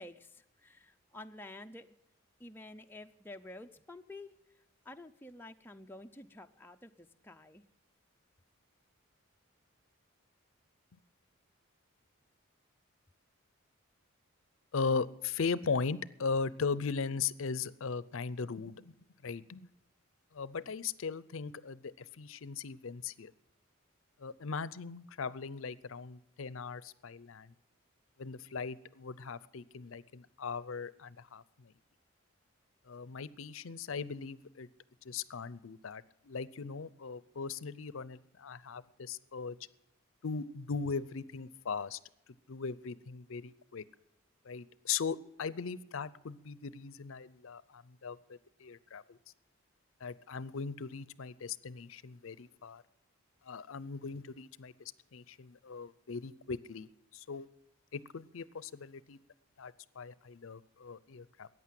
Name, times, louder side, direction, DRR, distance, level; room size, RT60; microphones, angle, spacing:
voice 1, 0.0-1.9 2.4-7.7, left 2 dB, 10° left, 5 dB, 0.4 m, -50 dB
voice 2, 14.7-19.0 19.2-19.7 20.3-23.3 24.2-27.5 28.2-31.7 32.9-34.7 35.0-39.6 40.2-42.0 42.5-43.8 44.4-49.2 50.0-52.8 53.4-56.9 57.1-57.5 57.9-59.2 59.6-61.5, left 5 dB, 70° left, 19 dB, 0.5 m, -39 dB
14.0 x 9.3 x 7.6 m, 0.82 s
head